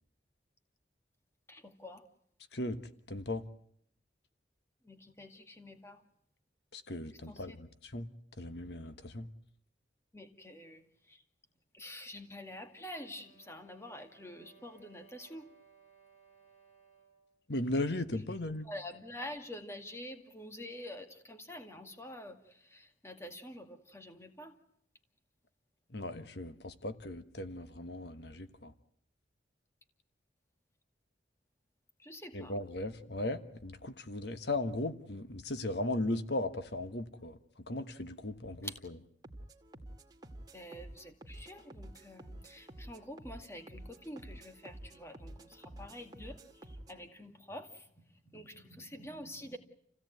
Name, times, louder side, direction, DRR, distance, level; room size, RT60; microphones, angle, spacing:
voice 1, 1.5-2.1 4.8-6.0 7.3-7.6 10.1-11.2 11.7-15.5 18.3-18.4 18.6-24.6 32.0-32.6 38.6-38.8 40.5-49.6, left 1 dB, 15° left, 7 dB, 2.2 m, -47 dB
voice 2, 3.1-3.5 6.7-8.1 8.4-9.3 17.5-18.7 25.9-28.7 32.3-38.7, left 2 dB, 65° left, 10 dB, 1.3 m, -37 dB
sound 1, 12.6-17.3, right 7 dB, 40° left, 7.0 m, -64 dB
sound 2, 39.2-47.0, right 1 dB, 20° right, 2.2 m, -50 dB
28.5 x 16.5 x 9.2 m, 0.69 s
head